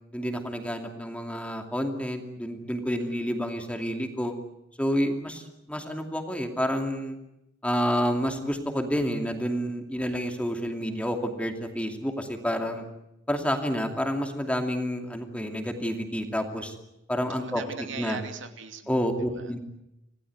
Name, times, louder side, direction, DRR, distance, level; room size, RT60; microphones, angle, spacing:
voice 1, 0.1-4.3 4.8-7.2 7.6-12.9 13.3-16.8 17.1-17.6 18.0-18.2 18.9-19.6, equal, 5° left, 4 dB, 2.6 m, -29 dB
voice 2, 17.3-19.5, right 4 dB, 85° right, 6 dB, 2.6 m, -40 dB
26.5 x 17.5 x 9.4 m, 0.86 s
head